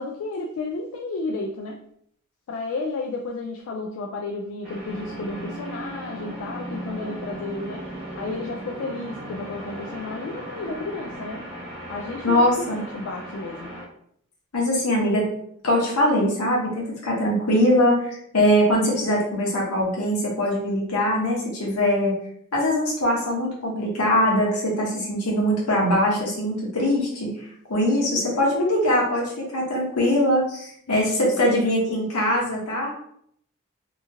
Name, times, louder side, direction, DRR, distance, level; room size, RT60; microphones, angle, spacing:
voice 1, 0.0-1.8 2.5-7.9 8.2-11.4 11.9-13.7 30.9-32.0, left 3 dB, 65° left, 1 dB, 0.3 m, -32 dB
sound 1, 4.6-13.9, right 1 dB, 25° right, 1.2 m, -37 dB
voice 2, 12.2-12.8 14.5-15.2 15.6-22.1 22.5-27.3 27.7-32.9, equal, 80° left, -3 dB, 1.0 m, -22 dB
2.8 x 2.4 x 2.7 m, 0.68 s
head